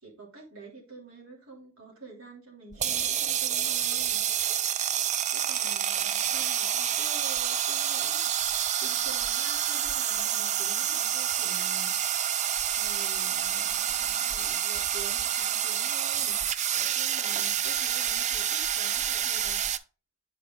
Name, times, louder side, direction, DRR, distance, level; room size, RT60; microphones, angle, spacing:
voice 1, 0.0-4.3 5.3-8.2 8.5-12.0 12.8-19.6, right 3 dB, 80° right, -2 dB, 3.0 m, -48 dB
sound 1, 2.7-19.8, right 10 dB, 35° right, 0.4 m, -28 dB
8.2 x 4.7 x 3.7 m, 0.34 s
head